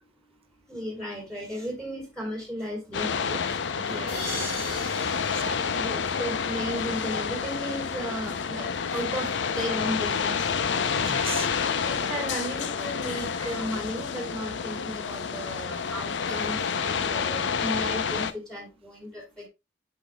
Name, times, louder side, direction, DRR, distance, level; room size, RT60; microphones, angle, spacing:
voice 1, 0.7-3.4 5.8-10.5 11.9-19.5, equal, 5° left, 2.7 m, -35 dB
sound 1, 2.9-18.3, left 6 dB, 85° left, 0.5 m, -29 dB
voice 2, 3.8-5.8 10.9-11.5 13.4-13.6, right 7 dB, 30° right, 0.5 m, -39 dB
sound 2, 4.1-6.9, left 1 dB, 65° left, 4.0 m, -39 dB
8.5 x 5.1 x 2.2 m
head